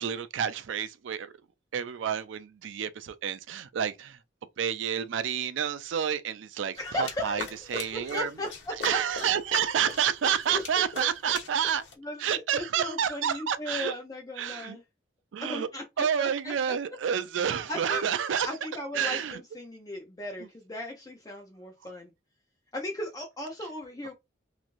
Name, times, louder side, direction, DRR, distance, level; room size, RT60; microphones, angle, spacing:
voice 1, 0.0-1.3 1.7-4.2 4.6-8.3 8.8-11.8 12.2-13.9 14.4-14.8 15.3-15.7 16.0-18.5 18.9-19.4, right 8 dB, 90° right, 0.4 m, -29 dB
sound 1, 6.7-11.9, left 3 dB, 90° left, 1.2 m, -41 dB
voice 2, 6.8-9.0 10.5-10.6 11.0-11.1 12.0-14.8 15.4-16.5 17.7-18.0 18.4-22.1 22.7-24.1, left 1 dB, 20° left, 0.5 m, -37 dB
3.0 x 2.5 x 2.5 m
head